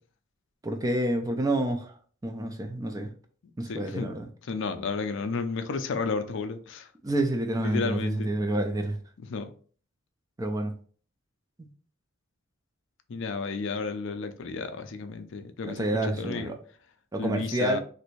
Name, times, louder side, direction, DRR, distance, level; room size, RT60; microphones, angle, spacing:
voice 1, 0.6-1.9 2.2-3.1 3.6-4.3 7.0-9.0 10.4-10.7 11.6-11.7 15.6-16.6 17.1-17.8, right 1 dB, 15° right, 0.3 m, -28 dB
voice 2, 3.7-4.1 4.4-6.9 7.6-8.3 9.2-9.5 13.1-16.6 17.2-17.8, left 4 dB, 60° left, 0.4 m, -32 dB
3.2 x 2.6 x 3.0 m
head